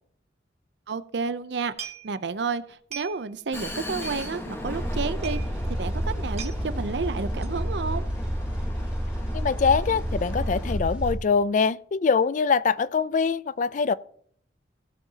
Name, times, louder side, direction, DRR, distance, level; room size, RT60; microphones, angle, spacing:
voice 1, 0.9-5.4 5.8-8.0, right 4 dB, 75° right, 0.6 m, -31 dB
sound 1, 1.8-2.4 2.7-3.4 3.7-3.8 4.0-4.6 4.9-5.0 5.2-5.5 5.9-6.0 6.1-6.6 7.4-7.7 8.0-8.4 8.7-8.8, right 8 dB, 35° right, 0.9 m, -40 dB
Vehicle, 3.5-10.8, left 1 dB, 15° left, 1.2 m, -38 dB
sound 2, 4.6-11.2, equal, 5° right, 2.1 m, -29 dB
voice 2, 9.3-13.9, left 5 dB, 45° left, 0.3 m, -23 dB
16.0 x 7.3 x 2.8 m
head